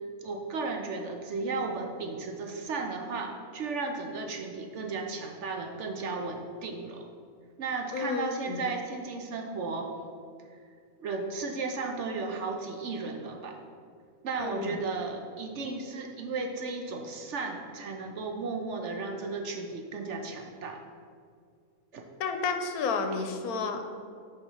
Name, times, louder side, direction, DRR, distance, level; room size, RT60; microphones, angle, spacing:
voice 1, 0.2-7.0 7.6-9.9 11.0-13.6 14.2-20.8 21.9-22.0, right 3 dB, 60° right, 3 dB, 0.9 m, -34 dB
voice 2, 7.9-8.6 14.4-14.8 22.2-23.9, left 4 dB, 80° left, 6 dB, 1.2 m, -31 dB
6.6 x 4.4 x 5.6 m, 2.2 s
omnidirectional pair, 1.5 m